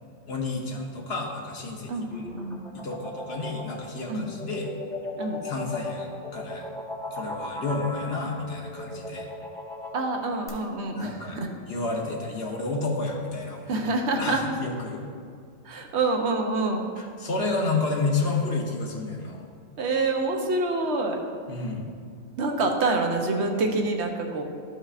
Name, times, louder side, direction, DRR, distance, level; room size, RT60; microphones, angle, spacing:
voice 1, 0.3-2.2 2.7-4.7 5.4-6.7 7.0-9.3 10.9-13.8 14.2-15.0 17.0-19.5 21.5-21.8, left 3 dB, 60° left, 0 dB, 1.1 m, -30 dB
voice 2, 1.9-2.6 4.1-4.3 5.2-5.4 9.9-11.5 13.7-14.4 15.6-16.8 19.8-21.2 22.4-24.4, right 3 dB, 70° right, 3 dB, 1.0 m, -26 dB
sound 1, 2.0-10.5, left 2 dB, 5° left, 0.9 m, -37 dB
12.0 x 5.6 x 2.4 m, 2.2 s
omnidirectional pair, 1.2 m